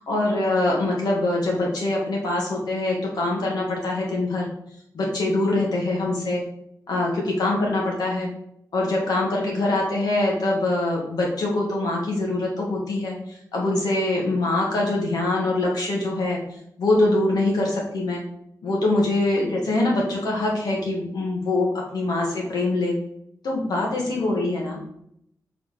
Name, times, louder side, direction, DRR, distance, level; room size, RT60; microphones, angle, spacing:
voice 1, 0.1-4.5 4.9-6.4 6.9-8.3 8.7-13.2 13.5-16.4 16.8-18.2 18.6-23.0 23.4-24.8, left 2 dB, 85° left, -2 dB, 1.8 m, -23 dB
5.0 x 4.1 x 4.9 m, 0.74 s
wide cardioid pair, 130°, 7 cm